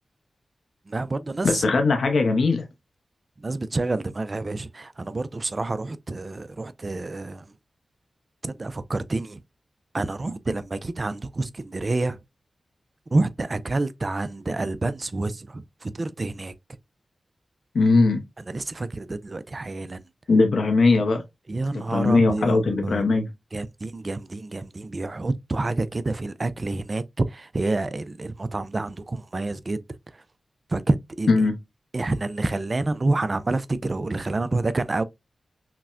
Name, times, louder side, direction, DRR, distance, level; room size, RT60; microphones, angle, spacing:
voice 1, 0.9-1.6 3.4-7.5 8.4-9.4 9.9-12.2 13.1-16.5 18.5-20.0 21.5-23.0 23.5-29.8 30.7-31.3 31.9-35.0, right 2 dB, 45° right, 0.4 m, -28 dB
voice 2, 1.4-2.6 17.7-18.2 20.3-21.2 21.7-23.3 31.3-31.5, left 3 dB, 80° left, 0.7 m, -20 dB
5.8 x 2.1 x 2.4 m
cardioid pair, 50°, 0 cm